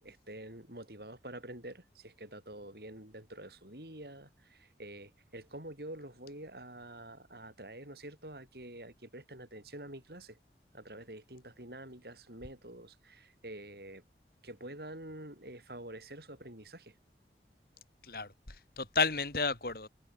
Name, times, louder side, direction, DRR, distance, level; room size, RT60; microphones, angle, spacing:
voice 1, 0.0-10.4 10.7-14.0 14.4-16.9, right 1 dB, 65° right, 6.7 m, -47 dB
voice 2, 18.0-19.9, left 4 dB, 55° left, 3.0 m, -32 dB
head